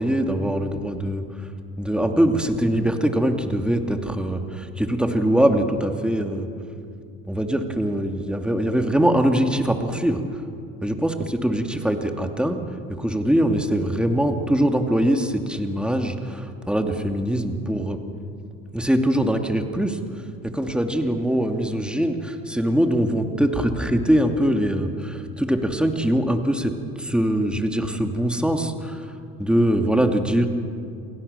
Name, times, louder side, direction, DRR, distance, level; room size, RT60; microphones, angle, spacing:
voice 1, 0.0-1.5 1.8-6.5 7.3-10.4 10.8-12.6 13.0-18.0 18.7-20.0 20.4-26.7 27.0-29.1 29.4-30.5, right 1 dB, ahead, 5 dB, 2.7 m, -22 dB
29.0 x 17.5 x 7.1 m, 2.4 s
hypercardioid pair, 65°, 40 cm